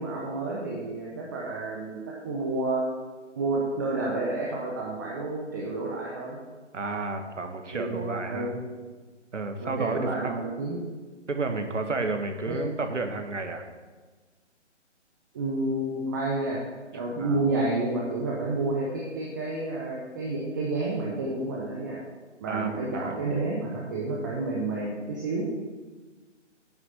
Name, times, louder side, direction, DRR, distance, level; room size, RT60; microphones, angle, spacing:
voice 1, 0.0-2.9 3.4-6.4 7.7-8.6 9.6-10.9 12.5-12.6 15.3-22.0 22.4-25.5, right 2 dB, 15° right, -4 dB, 0.8 m, -30 dB
voice 2, 6.7-8.5 9.3-10.3 11.3-13.6 17.2-17.4 22.5-23.2, right 3 dB, 75° right, 6 dB, 1.6 m, -31 dB
9.5 x 6.2 x 6.7 m, 1.3 s
figure-of-eight pair, 150°, 37 cm